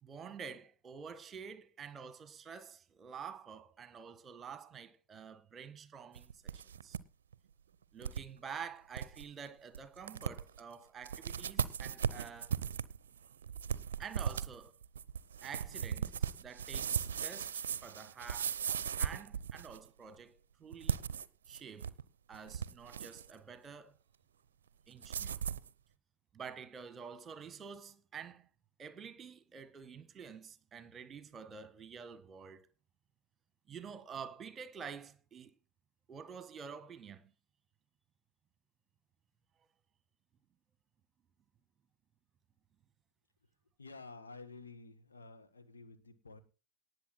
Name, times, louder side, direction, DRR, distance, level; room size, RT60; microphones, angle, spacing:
voice 1, 0.0-7.0 7.9-12.5 14.0-14.7 15.4-18.5 18.9-21.0 21.5-22.0 22.3-23.9 24.9-25.4 26.3-28.5 28.8-32.7 33.7-35.5 36.1-37.2, right 6 dB, 20° right, 1.4 m, -49 dB
sound 1, 6.2-7.0 7.3-7.4 8.0-8.2 8.6-8.7 8.9-9.2 9.7-9.8 10.1-10.6 11.0-19.9 20.7-22.0 22.3-23.3 25.0-25.7, right 8 dB, 65° right, 0.6 m, -37 dB
voice 2, 43.8-46.4, left 3 dB, 75° left, 1.8 m, -51 dB
18.5 x 6.8 x 4.3 m
figure-of-eight pair, 90°, 0 cm